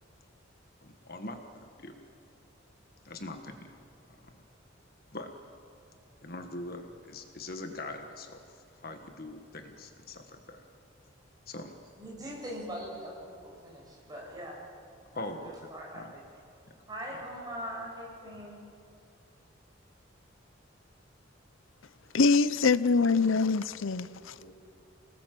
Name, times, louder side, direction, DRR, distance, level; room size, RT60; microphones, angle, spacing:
voice 1, 0.8-1.9 3.0-3.7 4.1-4.4 5.1-5.3 6.2-8.4 8.7-10.6 11.5-11.7 15.1-16.1 17.1-17.2, left 2 dB, 50° left, 1.6 m, -42 dB
voice 2, 12.0-14.6 15.1-16.2 16.9-18.6 24.0-24.5, equal, 20° right, 6.8 m, -42 dB
voice 3, 22.1-24.3, left 4 dB, 80° left, 0.7 m, -24 dB
27.0 x 19.0 x 7.7 m
head